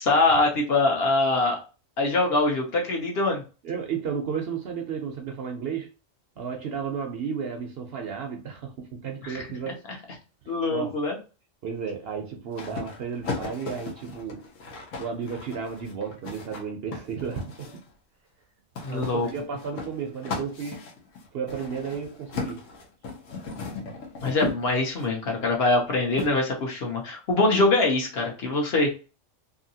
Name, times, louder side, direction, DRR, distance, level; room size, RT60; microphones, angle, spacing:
voice 1, 0.0-1.6 2.0-3.4 9.2-9.5 10.5-11.2 18.8-19.3 24.2-28.9, left 2 dB, 55° left, 0.9 m, -23 dB
voice 2, 3.6-5.9 6.4-9.8 10.7-11.0 11.6-14.5 15.0-17.8 18.8-20.9 21.3-22.7, right 6 dB, 65° right, 0.7 m, -33 dB
sound 1, 12.5-17.9 18.8-25.1 26.2-26.3, left 4 dB, 90° left, 1.2 m, -36 dB
2.8 x 2.6 x 2.6 m
omnidirectional pair, 1.3 m